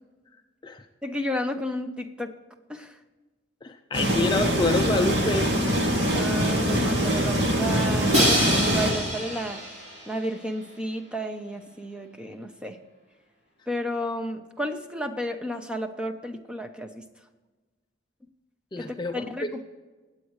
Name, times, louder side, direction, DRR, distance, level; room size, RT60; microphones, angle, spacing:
voice 1, 1.0-2.3 2.7-2.9 6.1-9.6 10.1-12.8 13.7-17.0 18.8-19.6, equal, 5° right, 6 dB, 0.7 m, -32 dB
voice 2, 3.6-5.5 18.7-19.5, left 2 dB, 20° left, 5 dB, 0.4 m, -27 dB
sound 1, 3.9-8.9, equal, 60° right, 2.3 m, -24 dB
Crash cymbal, 8.1-10.1, equal, 35° right, 4.6 m, -25 dB
21.5 x 8.4 x 3.2 m, 1.3 s
head